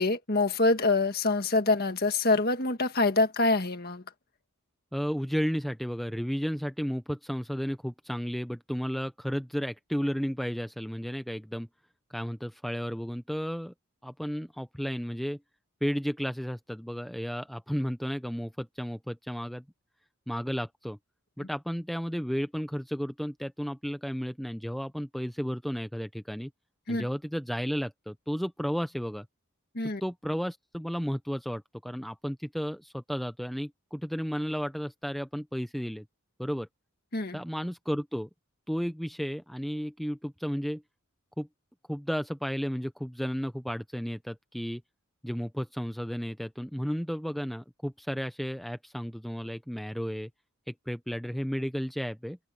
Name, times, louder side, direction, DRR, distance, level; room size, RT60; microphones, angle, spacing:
voice 1, 0.0-4.0 21.4-21.5 26.9-27.1 29.7-30.0 37.1-37.4, left 3 dB, 45° left, 1.8 m, -25 dB
voice 2, 4.9-11.7 12.1-13.7 14.0-15.4 15.8-19.6 20.3-21.0 21.4-26.5 26.9-29.3 30.0-36.0 36.4-36.7 37.3-38.3 38.7-40.8 41.4-41.5 41.9-44.8 45.2-50.3 50.7-52.4, equal, ahead, 0.4 m, -33 dB
open air
head